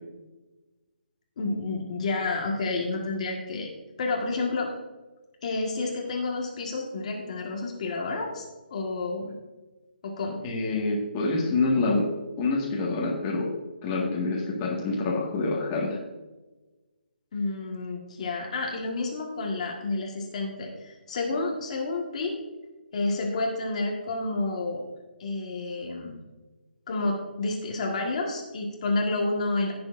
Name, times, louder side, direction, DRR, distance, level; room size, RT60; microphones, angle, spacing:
voice 1, 1.4-3.7 4.0-4.7 5.4-8.4 8.7-9.3 10.0-10.4 17.3-22.4 22.9-24.8 25.2-26.2 26.9-29.7, left 3 dB, 40° left, 0 dB, 1.6 m, -30 dB
voice 2, 10.4-12.1 12.4-13.5 13.8-16.0, left 3 dB, 20° left, -3 dB, 1.7 m, -26 dB
17.0 x 6.8 x 2.6 m, 1.2 s
hypercardioid pair, 165°, 6 cm